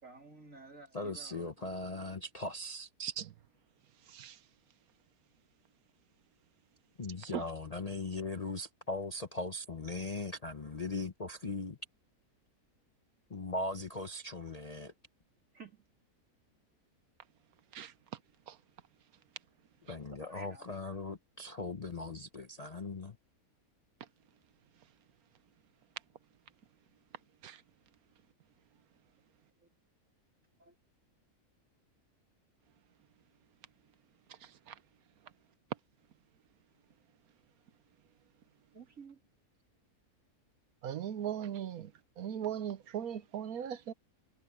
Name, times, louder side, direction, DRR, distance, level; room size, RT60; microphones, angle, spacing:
voice 1, 0.0-1.7 15.5-15.8 20.2-20.7 30.6-30.7 38.7-39.2, right 4 dB, 60° right, 3.6 m, -53 dB
voice 2, 0.9-2.9 7.0-11.8 13.3-14.9 19.9-23.2, left 2 dB, 30° left, 0.8 m, -39 dB
voice 3, 3.0-3.3 4.1-4.4 7.3-7.5 17.7-17.9 18.5-18.6 19.9-20.0 27.4-27.6 34.4-34.8 40.8-41.9 42.2-43.9, right 9 dB, 75° right, 1.3 m, -39 dB
omnidirectional pair, 1.6 m